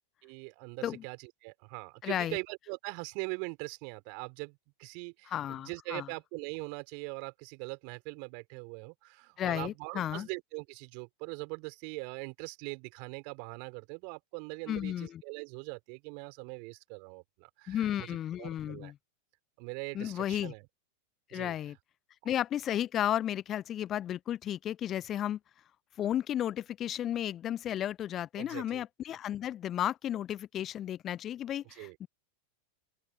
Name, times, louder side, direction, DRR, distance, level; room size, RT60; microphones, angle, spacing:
voice 1, 0.2-18.9 19.6-20.7 21.3-21.5 28.4-28.8 31.7-32.0, right 40 dB or more, 45° right, 5.7 m, -42 dB
voice 2, 2.0-2.4 5.3-6.1 9.4-10.3 14.7-15.2 17.7-18.9 19.9-20.5 21.3-21.8 22.2-25.4 26.0-32.1, left 11 dB, 30° left, 0.7 m, -33 dB
open air
figure-of-eight pair, 90°, 0 cm